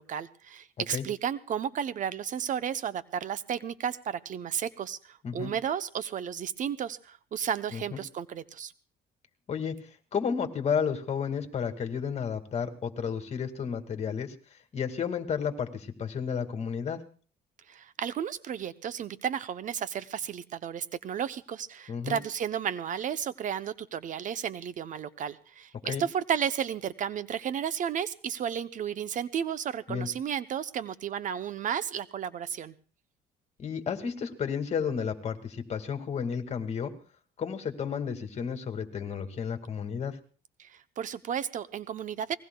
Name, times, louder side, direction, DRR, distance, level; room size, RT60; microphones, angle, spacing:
voice 1, 0.0-8.7 17.7-32.7 40.6-42.4, right 8 dB, 50° right, 14 dB, 0.7 m, -33 dB
voice 2, 9.5-9.8 10.1-14.3 14.7-17.0 21.9-22.2 25.8-26.0 29.9-30.1 33.6-36.9 37.4-40.2, left 7 dB, 40° left, 6 dB, 2.0 m, -32 dB
27.0 x 19.5 x 2.3 m, 0.41 s
cardioid pair, 110°, 17 cm